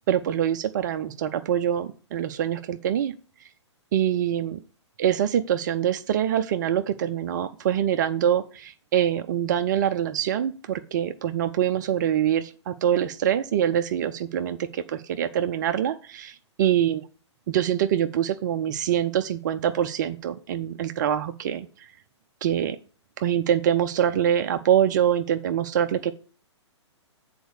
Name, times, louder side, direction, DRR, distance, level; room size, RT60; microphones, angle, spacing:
voice 1, 0.1-3.1 3.9-4.6 5.0-17.0 17.5-21.9 22.4-22.8 23.2-26.1, right 10 dB, 40° right, 9 dB, 0.5 m, -24 dB
7.8 x 4.2 x 6.5 m, 0.39 s
figure-of-eight pair, 115°, 15 cm